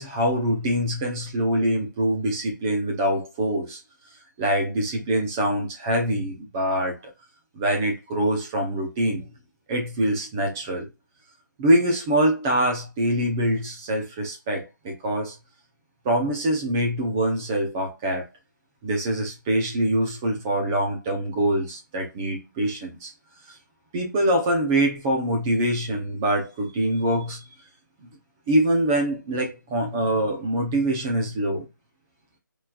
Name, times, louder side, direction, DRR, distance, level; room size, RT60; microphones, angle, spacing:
voice 1, 0.0-3.8 4.4-7.0 7.5-9.2 9.7-10.9 11.6-15.3 16.0-18.3 18.8-23.1 23.9-27.4 28.5-31.7, right 1 dB, 10° right, 0.6 m, -24 dB
5.6 x 3.2 x 2.3 m
figure-of-eight pair, 175°, 11 cm